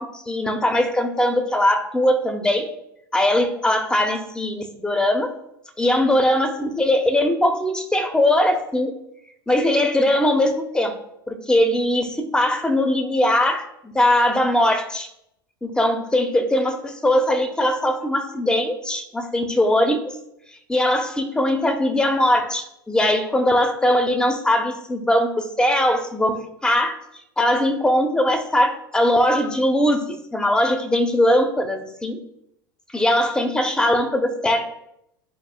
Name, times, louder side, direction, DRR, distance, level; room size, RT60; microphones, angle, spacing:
voice 1, 0.0-2.7 3.1-5.3 5.8-8.9 9.5-11.0 11.3-15.1 15.6-20.2 20.7-27.0 27.4-32.2 32.9-34.6, left 1 dB, 5° left, 6 dB, 1.1 m, -20 dB
13.5 x 5.3 x 2.3 m, 0.79 s
figure-of-eight pair, 80°, 12 cm